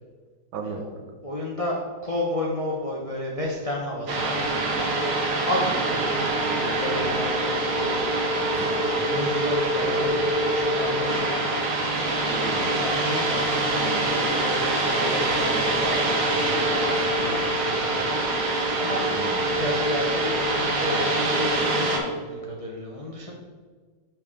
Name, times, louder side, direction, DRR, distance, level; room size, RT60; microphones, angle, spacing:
voice 1, 1.2-4.4 5.5-7.9 8.5-11.4 12.3-18.2 18.8-19.0 19.5-23.3, left 1 dB, 50° left, -3 dB, 0.4 m, -32 dB
sound 1, 4.1-22.0, right 2 dB, 60° right, 1.6 m, -24 dB
voice 2, 12.3-12.7 19.0-19.4, right 5 dB, 85° right, 5 dB, 1.6 m, -35 dB
6.8 x 5.9 x 3.6 m, 1.5 s
omnidirectional pair, 2.2 m